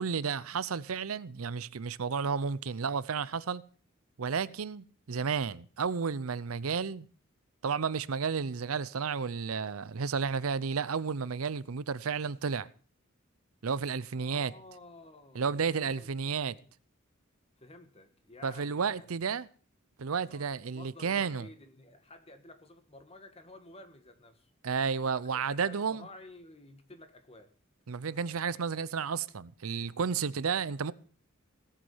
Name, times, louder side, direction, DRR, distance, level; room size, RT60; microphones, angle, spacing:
voice 1, 0.0-3.6 4.2-7.1 7.6-12.7 13.6-14.5 15.3-16.5 18.4-19.5 20.0-21.5 24.6-26.1 27.9-30.9, right 6 dB, 90° right, 0.6 m, -32 dB
voice 2, 14.1-16.7 17.6-19.1 20.3-24.5 25.0-27.5 30.2-30.4, left 2 dB, 30° left, 1.6 m, -53 dB
17.5 x 8.3 x 5.6 m
head